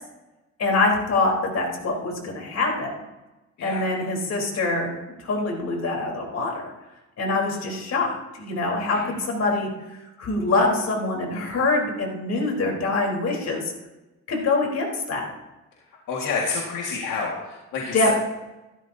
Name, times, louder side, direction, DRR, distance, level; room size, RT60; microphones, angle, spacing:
voice 1, 0.6-2.9 3.6-4.9 5.2-6.7 7.2-9.7 10.2-13.7 14.3-15.3 17.9-18.2, left 3 dB, 60° left, 0 dB, 3.9 m, -24 dB
voice 2, 16.1-18.2, left 4 dB, 85° left, -2 dB, 1.9 m, -29 dB
15.5 x 12.5 x 2.8 m, 1.0 s
cardioid pair, 90°, 30 cm